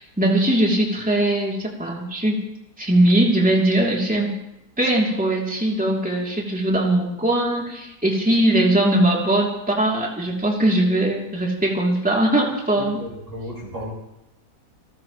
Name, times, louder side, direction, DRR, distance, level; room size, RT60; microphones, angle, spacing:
voice 1, 0.0-2.4 2.8-4.3 4.8-13.0, right 1 dB, 5° right, -2 dB, 2.9 m, -20 dB
voice 2, 12.8-13.9, equal, 20° right, -7 dB, 7.7 m, -33 dB
29.0 x 14.0 x 3.1 m, 0.91 s
omnidirectional pair, 1.7 m